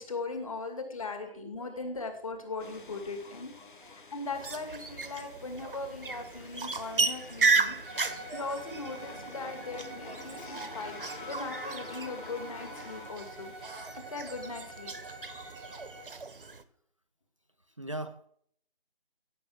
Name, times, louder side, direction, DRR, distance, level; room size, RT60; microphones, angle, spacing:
voice 1, 0.0-13.5 14.1-14.9, left 3 dB, 35° left, 6 dB, 2.5 m, -39 dB
voice 2, 1.3-1.9 3.6-4.1 6.4-6.5 8.1-8.3 10.2-10.5 16.4-16.5 17.8-18.3, right 1 dB, 30° right, 7 dB, 0.6 m, -44 dB
sound 1, 2.6-13.7, left 4 dB, 55° left, 1.3 m, -48 dB
sound 2, 4.3-16.6, right 4 dB, 60° right, 1.3 m, -34 dB
Bowed string instrument, 7.8-16.2, right 2 dB, 15° right, 1.2 m, -47 dB
16.0 x 7.6 x 7.8 m, 0.65 s
figure-of-eight pair, 170°, 30 cm